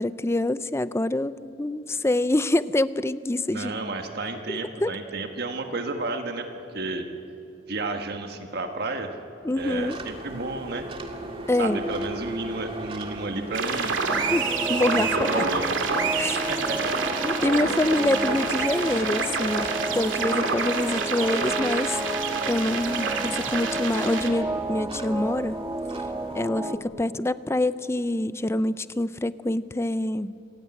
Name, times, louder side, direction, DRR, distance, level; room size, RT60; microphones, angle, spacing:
voice 1, 0.0-3.7 4.5-5.0 9.4-10.0 11.5-11.9 14.3-15.5 16.2-16.5 17.2-22.0 22.5-25.6 26.3-30.3, left 1 dB, 15° left, 15 dB, 0.5 m, -26 dB
voice 2, 3.5-7.0 7.7-9.1 9.6-10.9 11.6-14.3 14.9-15.7 16.3-17.0, right 3 dB, 55° right, 5 dB, 1.4 m, -32 dB
sound 1, 9.6-26.4, right 1 dB, 30° right, 2.0 m, -40 dB
sound 2, 13.5-24.3, right 5 dB, 90° right, 2.4 m, -28 dB
sound 3, 14.1-26.8, right 1 dB, 15° right, 1.3 m, -31 dB
27.5 x 15.5 x 8.8 m, 2.7 s
head